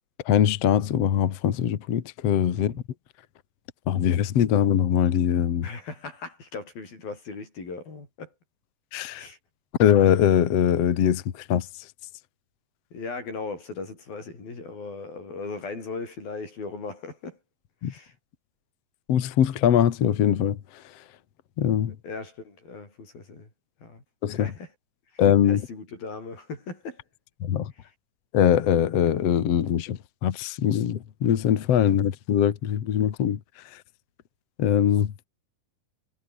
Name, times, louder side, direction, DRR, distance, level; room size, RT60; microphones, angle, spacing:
voice 1, 0.3-2.7 3.9-5.7 8.9-9.3 9.8-11.2 11.5-11.7 17.8-17.9 19.1-20.6 21.6-21.9 24.2-24.5 25.2-25.6 27.4-27.7 28.3-33.4 34.6-35.1, left 9 dB, 55° left, 2.3 m, -22 dB
voice 2, 5.6-8.3 9.1-9.4 12.9-17.4 17.8-18.1 21.9-23.5 23.8-24.7 25.1-27.0 27.8-27.9, left 4 dB, 90° left, 9.9 m, -38 dB
omnidirectional pair, 4.1 m